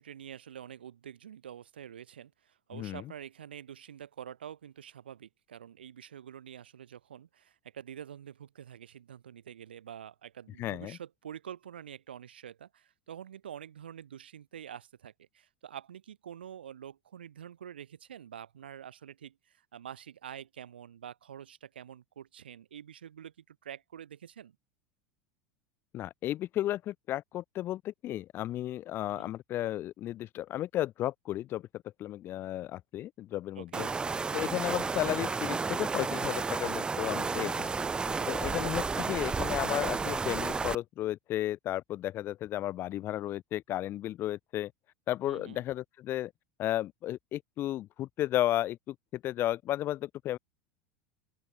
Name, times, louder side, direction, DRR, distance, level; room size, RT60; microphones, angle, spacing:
voice 1, 0.0-24.6 29.1-29.3 33.6-33.9 38.2-38.5 45.3-45.6, right 9 dB, 85° right, 0.7 m, -47 dB
voice 2, 2.7-3.0 10.6-11.0 25.9-31.7 32.0-33.9 34.3-37.9 38.3-44.7 45.1-46.3 46.6-50.4, left 13 dB, 45° left, 0.8 m, -33 dB
sound 1, 33.7-40.7, right 4 dB, 15° right, 0.5 m, -32 dB
open air
hypercardioid pair, 90°, 5 cm